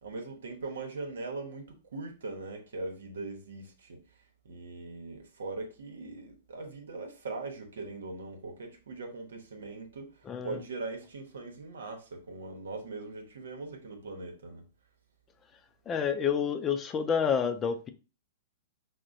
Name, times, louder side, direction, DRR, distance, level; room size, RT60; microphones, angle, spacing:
voice 1, 0.0-4.0 4.4-10.1 10.4-14.6, right 3 dB, 85° right, 1.0 m, -40 dB
voice 2, 10.3-10.6 15.9-17.9, left 7 dB, 20° left, 0.4 m, -29 dB
6.0 x 2.1 x 2.5 m
hypercardioid pair, 145°, 0 cm